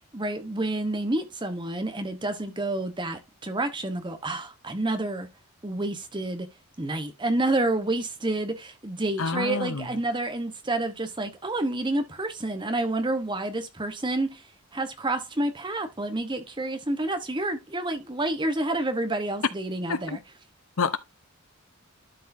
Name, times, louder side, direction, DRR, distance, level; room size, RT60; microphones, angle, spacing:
voice 1, 0.1-5.3 5.6-6.5 6.8-14.4 14.7-20.2, right 2 dB, 20° right, 1.0 m, -29 dB
voice 2, 9.2-9.9 19.9-20.0 20.8-21.0, left 5 dB, 70° left, 0.8 m, -27 dB
12.0 x 4.7 x 2.7 m
head